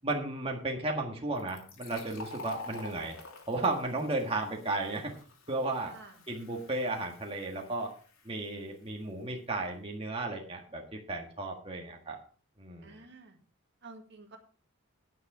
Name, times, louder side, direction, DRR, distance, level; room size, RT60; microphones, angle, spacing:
voice 1, 0.0-3.1 3.5-5.1 5.5-5.9 6.3-7.9 8.2-10.8 11.1-12.2 12.6-13.0, right 2 dB, 25° right, 1 dB, 1.6 m, -34 dB
Fill (with liquid), 1.3-8.7, left 2 dB, 70° left, 3.1 m, -49 dB
voice 2, 5.8-6.2 12.8-13.4 13.8-14.4, right 3 dB, 55° right, 4 dB, 1.9 m, -50 dB
9.7 x 9.0 x 4.9 m, 0.41 s
head